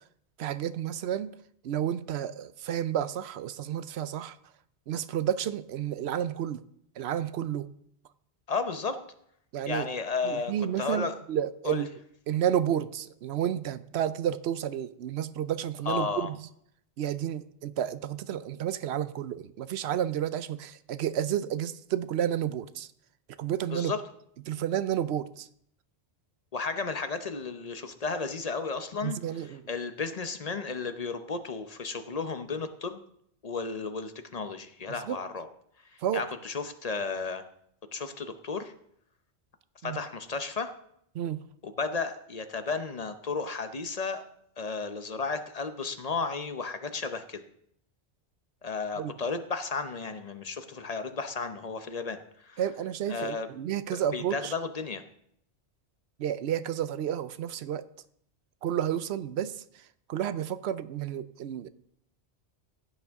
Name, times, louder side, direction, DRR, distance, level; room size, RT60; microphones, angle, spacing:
voice 1, 0.4-1.3 1.6-4.4 4.9-6.6 7.0-7.7 9.5-9.9 10.2-11.9 12.3-16.4 17.0-22.9 23.4-23.9 24.5-25.5 29.0-29.6 35.1-35.2 36.0-36.2 39.8-40.0 41.1-41.4 49.0-49.1 52.6-54.5 56.2-57.8 58.6-59.6 60.1-61.7, right 10 dB, 75° right, 15 dB, 0.8 m, -31 dB
voice 2, 8.5-9.0 9.7-11.1 11.6-11.8 15.9-16.3 23.7-24.0 26.5-33.0 33.4-35.5 36.1-37.4 37.9-38.7 39.8-40.7 41.6-44.2 44.6-47.4 48.6-52.6 53.1-53.5 53.9-55.0, left 4 dB, 40° left, 9 dB, 0.8 m, -33 dB
15.0 x 8.9 x 3.6 m, 0.69 s
omnidirectional pair, 1.1 m